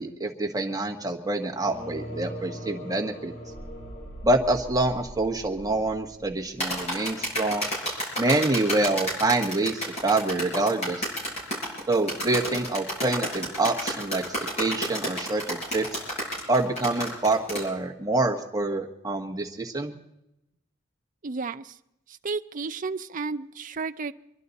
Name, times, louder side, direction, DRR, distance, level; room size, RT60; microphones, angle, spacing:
voice 1, 0.0-3.3 4.2-7.7 8.2-11.0 11.9-15.8 16.5-19.9, right 2 dB, 20° right, 0 dB, 1.4 m, -26 dB
sound 1, 1.6-7.3, equal, 70° left, 6.2 m, -40 dB
sound 2, 6.6-17.6, equal, 30° left, 6.3 m, -30 dB
voice 2, 21.2-21.8 22.1-24.1, right 4 dB, 40° right, 9 dB, 0.5 m, -32 dB
25.5 x 11.5 x 4.1 m, 0.85 s
head